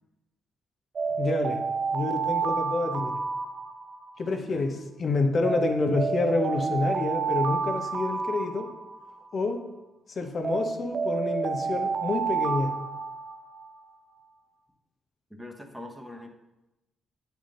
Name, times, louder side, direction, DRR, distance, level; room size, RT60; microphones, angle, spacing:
Alarm, 1.0-4.3 5.4-9.3 10.4-13.7, right 5 dB, 45° right, 0.5 m, -30 dB
voice 1, 1.2-1.6 1.9-3.2 4.2-8.7 9.3-9.6 10.1-12.7, left 3 dB, 45° left, 4 dB, 0.9 m, -28 dB
voice 2, 15.3-16.3, left 1 dB, ahead, 2 dB, 1.0 m, -42 dB
8.9 x 3.6 x 3.8 m, 0.98 s
cardioid pair, 90°, 0 cm